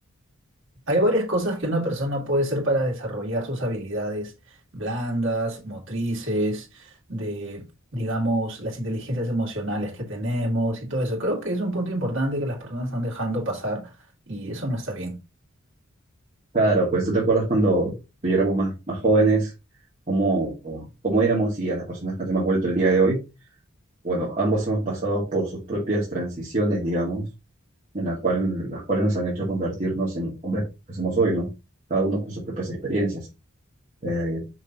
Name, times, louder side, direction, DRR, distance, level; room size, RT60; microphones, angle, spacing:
voice 1, 0.9-4.3 4.7-7.6 7.9-13.9 14.3-15.2, right 1 dB, 65° right, 2.5 m, -27 dB
voice 2, 16.5-17.9 18.2-19.5 20.1-23.2 24.0-27.3 27.9-31.5 31.9-33.3 34.0-34.4, right 2 dB, 35° right, 2.1 m, -23 dB
6.2 x 5.3 x 2.9 m
head